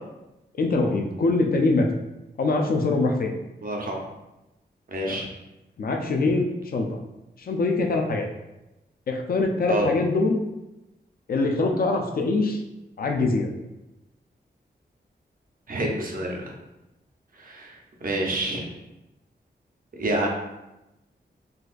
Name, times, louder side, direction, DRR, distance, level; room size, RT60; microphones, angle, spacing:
voice 1, 0.5-1.9 2.4-3.3 5.1-5.3 5.8-6.9 7.4-8.3 9.1-10.4 11.3-12.6 13.0-13.5, left 3 dB, 55° left, 3 dB, 0.4 m, -23 dB
voice 2, 3.6-4.0 4.9-5.3 9.7-9.9 15.7-16.5 17.4-18.7 19.9-20.3, right 1 dB, 50° right, -1 dB, 0.6 m, -28 dB
3.9 x 2.4 x 2.4 m, 0.96 s
wide cardioid pair, 120°, 18 cm